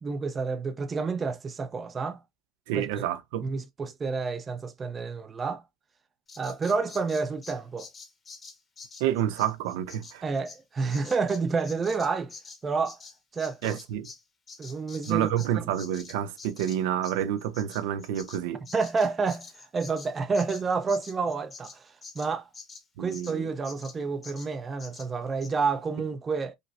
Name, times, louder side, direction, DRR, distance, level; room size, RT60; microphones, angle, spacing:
voice 1, 0.0-2.2 2.7-3.0 3.4-5.6 6.4-7.9 10.2-12.3 12.6-13.0 13.3-13.8 14.6-15.3 15.5-15.6 18.7-19.5 19.7-22.5 23.0-26.5, right 4 dB, 20° right, 0.4 m, -29 dB
voice 2, 2.7-3.5 9.0-10.2 13.6-14.1 15.1-18.6 23.0-23.4, right 11 dB, 80° right, 0.5 m, -29 dB
Bird vocalization bird call bird song, 6.3-14.2 14.5-23.4 23.6-24.0 24.2-24.5 24.8-25.1 25.4-25.5, left 4 dB, 20° left, 0.8 m, -47 dB
5.1 x 2.0 x 2.4 m
cardioid pair, 155°, 0 cm